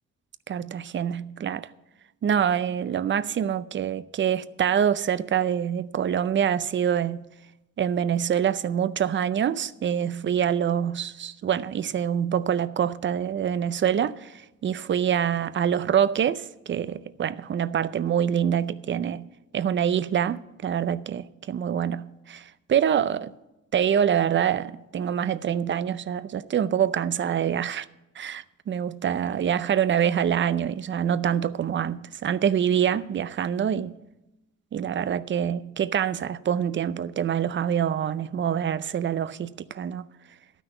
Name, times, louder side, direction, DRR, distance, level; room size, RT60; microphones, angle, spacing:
voice 1, 0.5-1.7 2.2-7.3 7.8-19.3 19.5-23.3 23.7-27.9 28.2-34.0 34.7-40.0, right 9 dB, 40° right, 0.5 m, -25 dB
12.5 x 6.2 x 7.9 m
cardioid pair, 90°, 30 cm